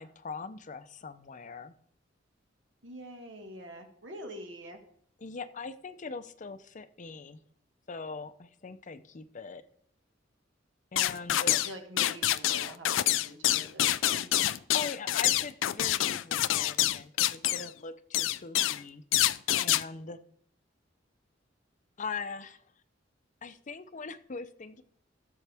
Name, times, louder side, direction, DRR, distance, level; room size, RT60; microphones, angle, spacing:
voice 1, 0.0-1.7 5.2-7.4 7.9-9.6 10.9-11.6 14.7-19.0 19.6-20.2 22.0-22.6 23.4-24.8, left 4 dB, 40° left, 11 dB, 0.6 m, -41 dB
voice 2, 2.8-4.8 11.6-14.3, right 1 dB, 75° right, 4 dB, 1.9 m, -45 dB
sound 1, 11.0-11.7 12.0-17.7 18.1-18.8 19.1-19.8, left 14 dB, 90° left, 0.4 m, -27 dB
15.0 x 7.0 x 3.5 m, 0.63 s
head